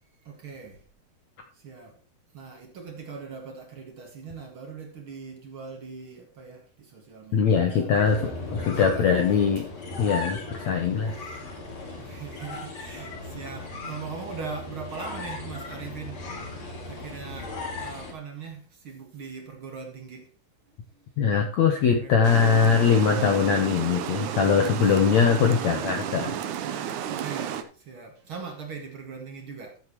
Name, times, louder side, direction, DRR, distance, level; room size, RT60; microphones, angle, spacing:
voice 1, 0.2-0.8 1.5-2.0 2.3-9.5 12.0-20.3 20.9-21.1 21.9-22.2 24.7-25.2 26.7-29.8, right 5 dB, 45° right, 1.9 m, -41 dB
voice 2, 7.3-9.7 10.0-11.2 21.2-26.4 26.7-26.9, left 6 dB, 75° left, 1.6 m, -22 dB
sound 1, 7.9-18.1, left 2 dB, 45° left, 3.9 m, -37 dB
Water, 22.2-27.6, right 9 dB, 85° right, 1.7 m, -32 dB
14.0 x 7.9 x 3.2 m
omnidirectional pair, 4.8 m